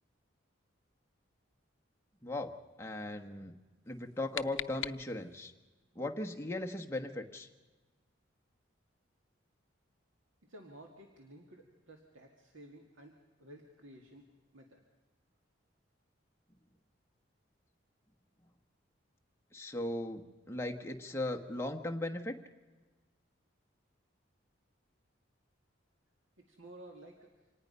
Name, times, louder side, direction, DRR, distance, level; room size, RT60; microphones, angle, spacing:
voice 1, 2.2-2.5 2.8-3.5 3.9-5.5 5.9-7.5 19.5-22.4, left 1 dB, 10° left, 3 dB, 1.2 m, -38 dB
sound 1, 3.8-5.5, left 11 dB, 80° left, 0.6 m, -43 dB
voice 2, 10.5-14.3 14.5-14.8 26.5-27.3, right 1 dB, 85° right, 2 dB, 2.0 m, -54 dB
26.0 x 19.0 x 5.5 m, 1.3 s
head